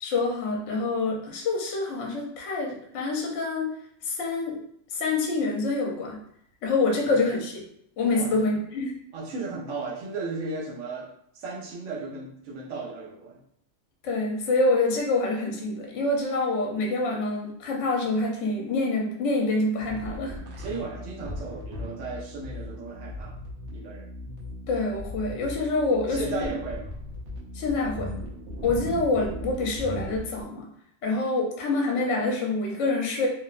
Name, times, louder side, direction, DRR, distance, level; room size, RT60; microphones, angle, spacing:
voice 1, 0.0-3.7 4.0-4.6 4.9-6.2 6.6-7.6 8.0-8.9 14.0-20.4 24.7-26.5 27.5-28.1 28.6-30.7 31.0-33.3, left 3 dB, 70° left, -1 dB, 0.9 m, -26 dB
voice 2, 9.1-13.4 20.6-23.4 23.7-24.1 26.1-26.9, right 3 dB, 85° right, -2 dB, 1.0 m, -35 dB
sound 1, 19.8-30.4, left 1 dB, 65° right, 0.9 m, -38 dB
2.7 x 2.1 x 2.3 m, 0.69 s
omnidirectional pair, 1.3 m